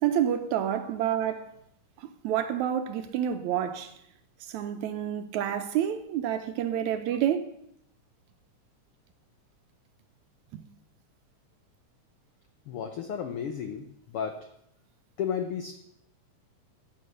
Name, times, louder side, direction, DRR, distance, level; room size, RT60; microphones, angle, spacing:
voice 1, 0.0-1.5 2.0-3.9 4.5-7.4 10.5-10.6, right 10 dB, 75° right, 1.9 m, -28 dB
voice 2, 12.7-14.4 15.2-15.8, left 7 dB, 85° left, 1.2 m, -33 dB
15.0 x 6.4 x 6.6 m
omnidirectional pair, 3.7 m